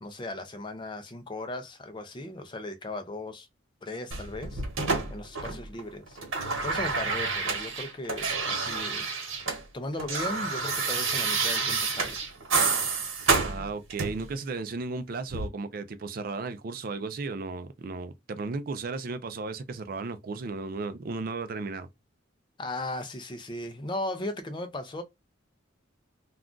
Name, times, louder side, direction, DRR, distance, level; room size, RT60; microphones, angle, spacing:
voice 1, 0.0-3.5 3.8-4.6 5.1-6.2 6.6-12.2 22.6-25.0, left 2 dB, 25° left, 0.4 m, -37 dB
sound 1, 4.1-5.8 6.1-9.6 9.9-14.3 15.3-15.5, right 4 dB, 75° right, 1.0 m, -29 dB
voice 2, 13.4-21.9, right 3 dB, 45° right, 0.4 m, -35 dB
2.4 x 2.3 x 3.7 m
head